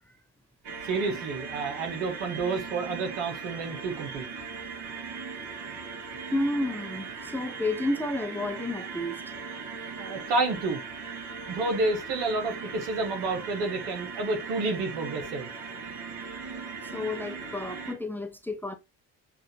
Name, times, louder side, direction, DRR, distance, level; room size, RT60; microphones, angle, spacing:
sound 1, 0.6-17.9, right 5 dB, 55° right, 1.6 m, -39 dB
voice 1, 0.8-4.3 10.0-10.8 11.4-15.5, right 3 dB, 75° right, 1.4 m, -30 dB
voice 2, 6.3-9.2 16.9-18.7, left 2 dB, 5° left, 0.7 m, -31 dB
7.5 x 2.6 x 2.8 m
hypercardioid pair, 50°, 47 cm